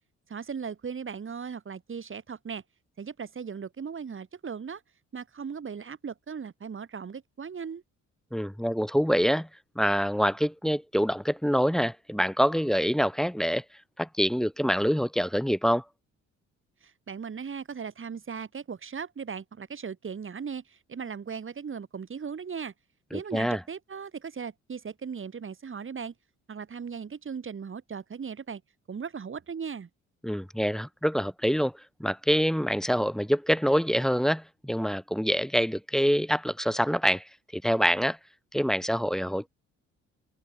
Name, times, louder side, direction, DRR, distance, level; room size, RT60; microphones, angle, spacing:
voice 1, 0.3-2.6 3.0-4.8 5.1-7.8 16.8-22.7 23.1-26.1 26.5-28.6 28.9-29.9, right 6 dB, 40° right, 5.8 m, -38 dB
voice 2, 8.3-9.5 9.8-13.6 14.0-15.8 23.1-23.6 30.2-31.7 32.0-38.2 38.5-39.5, equal, ahead, 1.7 m, -26 dB
cardioid pair, 90°, 30 cm